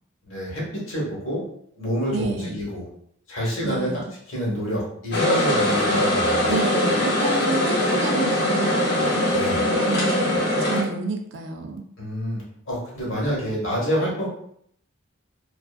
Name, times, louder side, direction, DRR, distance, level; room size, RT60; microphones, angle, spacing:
voice 1, 0.3-1.4 1.8-2.9 3.3-4.0 4.3-6.5 9.3-9.6 12.0-14.3, equal, 75° left, -4 dB, 1.0 m, -27 dB
voice 2, 2.1-2.6 3.6-4.1 6.5-9.2 9.8-11.8, right 4 dB, 65° right, 4 dB, 0.4 m, -30 dB
sound 1, 5.1-10.8, left 1 dB, 55° left, 0.6 m, -22 dB
2.4 x 2.3 x 2.4 m, 0.67 s
head